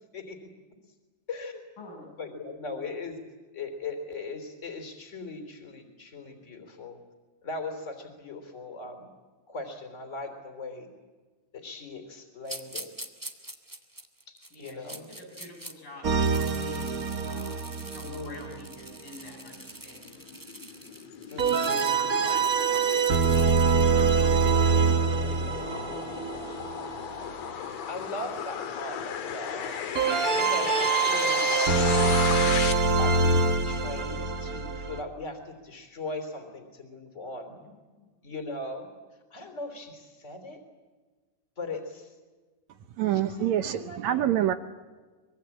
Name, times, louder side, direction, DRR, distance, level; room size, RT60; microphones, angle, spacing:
voice 1, 0.1-0.5 1.3-1.6 2.2-3.1 3.5-7.0 7.4-9.1 9.5-10.9 11.5-12.9 14.3-15.1 18.0-18.6 21.3-22.1 27.9-30.0 30.3-32.3 32.9-37.6 38.2-38.9 39.3-40.6 41.6-42.1 43.1-44.3, left 2 dB, 20° left, 3.7 m, -39 dB
voice 2, 1.8-2.1 2.7-3.0 14.5-17.0 17.2-20.2 21.6-26.6 37.5-37.6, left 2 dB, 85° left, 8.8 m, -47 dB
sound 1, 12.4-15.7 16.1-24.8, right 1 dB, 15° right, 0.6 m, -44 dB
sound 2, 16.0-18.8 21.4-27.1 29.9-35.0, right 4 dB, 50° right, 1.0 m, -25 dB
sound 3, 19.5-32.7, left 8 dB, 60° left, 2.6 m, -35 dB
voice 3, 43.0-44.5, right 11 dB, 70° right, 2.0 m, -26 dB
24.5 x 23.0 x 8.7 m
omnidirectional pair, 3.8 m